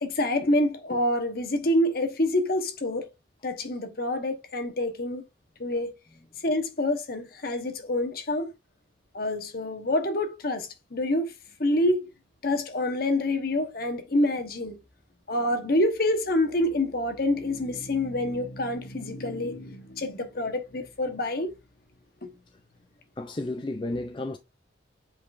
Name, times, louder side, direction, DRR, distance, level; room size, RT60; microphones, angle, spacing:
voice 1, 0.0-3.1 3.4-5.2 5.6-5.9 6.4-8.5 9.1-11.3 11.6-12.1 12.4-14.8 15.3-21.5, left 1 dB, 50° left, 1.1 m, -27 dB
voice 2, 23.2-24.4, left 2 dB, 25° left, 0.5 m, -32 dB
7.6 x 4.9 x 2.5 m
head